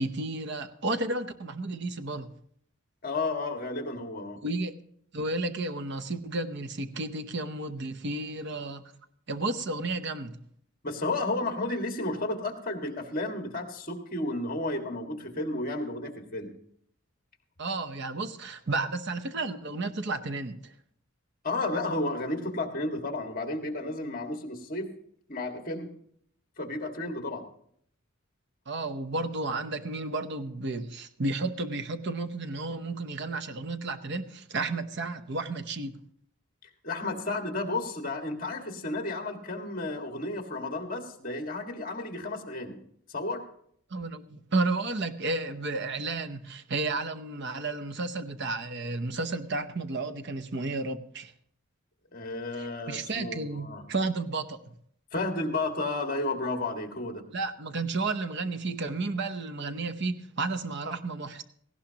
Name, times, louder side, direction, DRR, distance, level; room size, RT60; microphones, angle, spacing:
voice 1, 0.0-2.3 4.4-4.7 5.1-8.8 9.3-10.4 17.6-20.7 28.7-35.9 43.9-51.3 52.6-54.7 57.3-61.4, right 3 dB, 55° right, 10 dB, 0.8 m, -32 dB
voice 2, 3.0-4.4 10.8-16.5 21.4-24.9 25.3-25.9 26.6-27.4 36.8-42.8 43.1-43.4 52.1-53.8 55.1-57.2, left 2 dB, 40° left, 3 dB, 1.8 m, -32 dB
17.5 x 15.5 x 2.9 m, 0.65 s
head